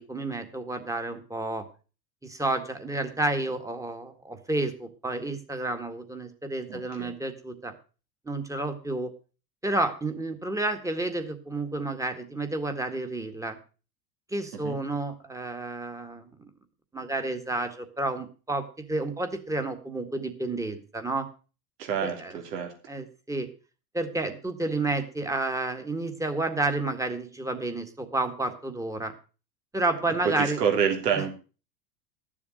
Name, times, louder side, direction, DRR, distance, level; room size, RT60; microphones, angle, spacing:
voice 1, 0.0-1.6 2.2-7.7 8.3-9.1 9.6-13.6 14.3-16.5 16.9-21.3 22.0-22.3 22.9-23.5 23.9-29.1 29.7-30.6, right 2 dB, 5° right, 7 dB, 1.8 m, -30 dB
voice 2, 6.7-7.1 14.5-14.8 21.8-22.7 30.2-31.3, right 7 dB, 80° right, 3 dB, 3.2 m, -28 dB
12.5 x 7.3 x 6.3 m, 0.36 s
hypercardioid pair, 110°, 48 cm